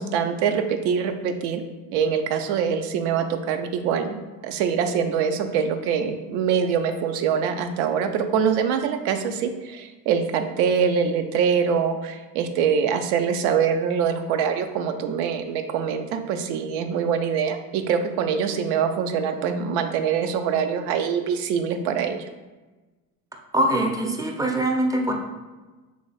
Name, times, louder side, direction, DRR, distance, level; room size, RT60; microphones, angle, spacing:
voice 1, 0.0-1.6 1.9-22.3, right 7 dB, 75° right, 7 dB, 0.5 m, -24 dB
voice 2, 23.5-25.1, right 1 dB, 10° right, 2 dB, 0.4 m, -23 dB
3.2 x 2.5 x 3.9 m, 1.2 s
supercardioid pair, 85°, 46 cm